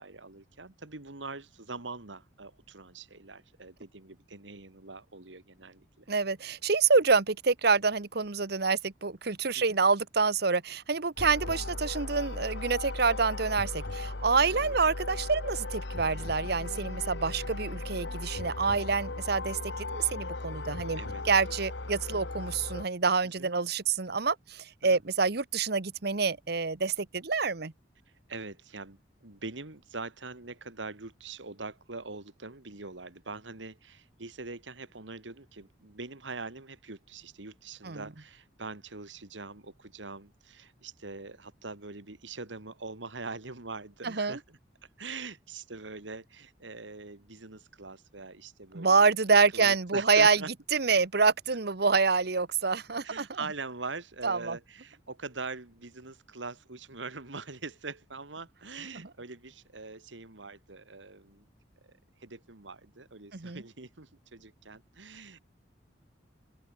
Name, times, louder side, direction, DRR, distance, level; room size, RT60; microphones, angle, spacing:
voice 1, 0.0-6.1 9.6-9.7 14.5-14.8 21.0-21.2 22.1-22.2 23.2-23.5 24.9-25.0 28.3-44.6 45.0-49.1 49.5-50.5 53.0-61.5 61.8-61.9 62.2-65.4, right 3 dB, 90° right, 2.3 m, -43 dB
voice 2, 6.1-21.0 21.3-27.7 37.8-38.0 44.0-44.4 48.7-50.4 50.7-53.3 54.2-54.6 63.3-63.6, right 4 dB, 60° right, 1.2 m, -27 dB
sound 1, 11.2-22.9, left 2 dB, 70° left, 1.7 m, -37 dB
head